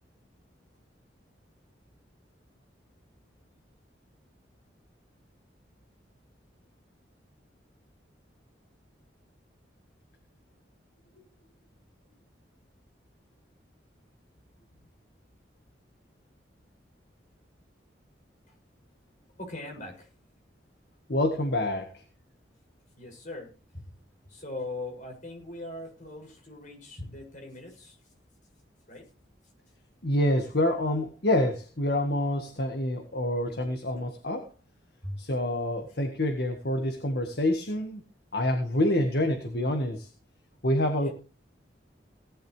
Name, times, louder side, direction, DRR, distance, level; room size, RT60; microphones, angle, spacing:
voice 1, 19.4-20.1 23.0-23.9 24.3-28.0 28.9-29.1 35.0-35.2 40.9-41.1, left 2 dB, 45° left, 2 dB, 7.1 m, -40 dB
voice 2, 21.1-22.0 30.0-34.5 35.2-38.0 38.3-40.1 40.6-41.1, left 1 dB, 60° left, 5 dB, 1.8 m, -27 dB
17.5 x 11.5 x 3.3 m, 0.32 s
head